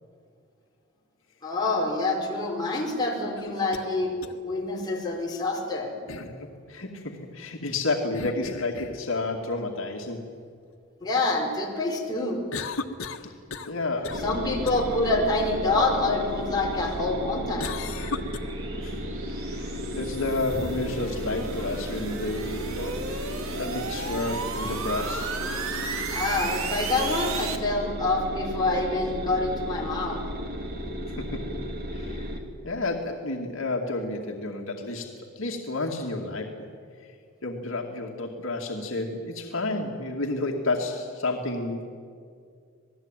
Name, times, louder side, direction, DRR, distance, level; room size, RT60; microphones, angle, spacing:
voice 1, 1.4-4.1 4.4-5.9 11.0-12.4 14.2-17.7 20.5-20.6 26.1-30.2, left 2 dB, 20° left, -2 dB, 5.0 m, -26 dB
sound 1, 3.4-3.9 4.2-4.3 6.1-6.4 8.1-9.0 12.5-13.8 14.0-14.3 14.7-14.8 17.6-18.4, left 4 dB, 85° left, 1.5 m, -35 dB
voice 2, 6.2-10.3 13.2-13.3 13.7-14.2 18.8-19.1 19.4-23.2 23.5-25.3 31.1-31.6 31.9-36.7 37.0-37.1 37.4-41.9, left 2 dB, 65° left, 1 dB, 2.5 m, -31 dB
sound 2, 14.1-32.4, equal, 45° right, 2.7 m, -34 dB
sound 3, 17.4-27.6, right 5 dB, 80° right, 2.0 m, -36 dB
27.5 x 19.5 x 9.2 m, 2.2 s
head